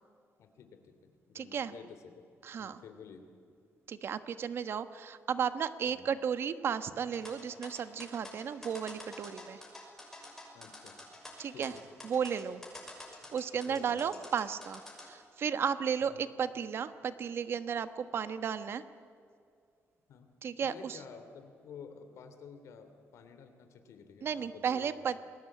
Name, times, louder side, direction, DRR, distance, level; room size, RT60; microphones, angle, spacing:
voice 1, 0.4-2.2 2.6-3.3 5.9-6.1 10.5-11.0 11.5-11.9 13.2-14.1 16.0-16.2 20.1-20.3 20.6-25.0, left 6 dB, 85° left, 7 dB, 3.0 m, -51 dB
voice 2, 1.3-1.7 2.4-2.8 3.9-9.6 11.4-11.7 12.0-12.6 13.3-18.8 20.4-21.0 24.2-25.2, right 7 dB, 55° right, 11 dB, 1.3 m, -34 dB
sound 1, 7.1-15.1, left 2 dB, 10° left, 6.2 m, -48 dB
29.0 x 20.5 x 8.7 m, 2.4 s
cardioid pair, 150°, 5 cm